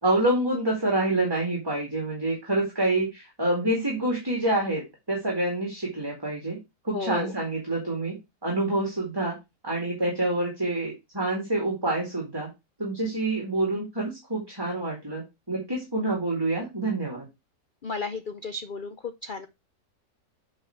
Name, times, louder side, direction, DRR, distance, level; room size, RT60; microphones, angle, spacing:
voice 1, 0.0-6.6 6.8-8.2 8.4-9.3 9.6-12.5 12.8-17.3, right 2 dB, 15° right, -2 dB, 2.4 m, -27 dB
voice 2, 6.9-7.3 17.8-18.9 19.2-19.5, left 3 dB, 75° left, 8 dB, 0.4 m, -33 dB
7.8 x 4.6 x 4.5 m, 0.23 s
omnidirectional pair, 1.7 m